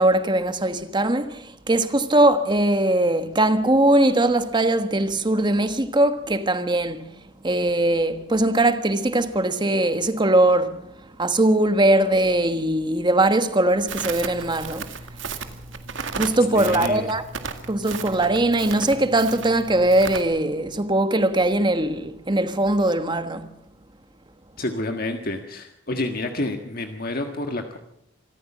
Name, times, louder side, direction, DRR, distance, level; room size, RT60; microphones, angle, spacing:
voice 1, 0.0-7.1 7.4-10.8 11.2-14.9 16.2-17.2 17.7-23.4, right 1 dB, 25° right, 1.4 m, -20 dB
Crackle, 13.9-20.2, right 5 dB, 85° right, 2.0 m, -34 dB
voice 2, 16.5-17.1 24.6-27.8, left 2 dB, 50° left, 1.6 m, -29 dB
25.5 x 14.0 x 7.3 m
head